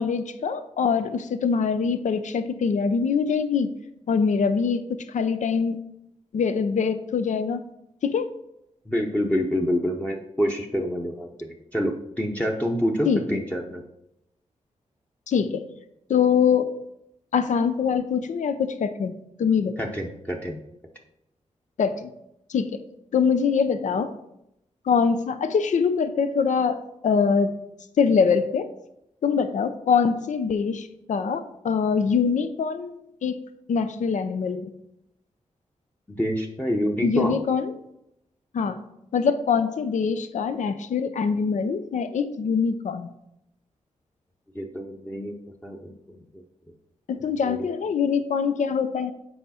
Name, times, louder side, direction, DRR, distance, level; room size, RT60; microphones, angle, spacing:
voice 1, 0.0-3.7 4.1-5.8 6.3-7.7 8.0-8.3 13.0-13.4 15.3-15.7 16.1-16.7 17.3-19.8 21.8-22.1 22.5-22.8 23.1-24.1 24.8-27.6 28.0-28.7 29.2-33.4 33.7-34.7 37.0-37.7 38.5-38.8 39.1-43.1 47.1-49.1, left 6 dB, 80° left, 10 dB, 0.6 m, -24 dB
voice 2, 8.9-11.3 11.7-13.8 19.8-20.6 36.1-37.4 44.5-45.4 45.6-46.4 47.4-47.7, equal, 10° left, -1 dB, 0.8 m, -27 dB
7.9 x 4.9 x 4.3 m, 0.82 s
cardioid pair, 80°, 12 cm